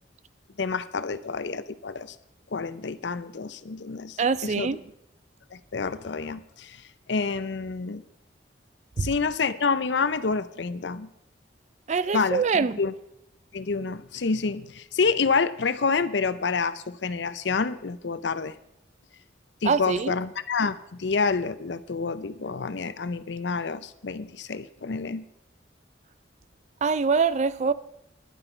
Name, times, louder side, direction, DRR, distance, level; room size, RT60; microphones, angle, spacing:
voice 1, 0.6-2.2 2.5-4.8 5.5-6.8 7.1-8.0 9.0-11.1 12.1-12.9 13.5-18.6 19.6-25.2, left 4 dB, 75° left, 0.6 m, -28 dB
voice 2, 4.2-4.8 9.0-9.1 11.9-12.8 19.6-20.2 26.8-27.7, right 5 dB, 40° right, 0.4 m, -24 dB
12.0 x 11.0 x 4.4 m
head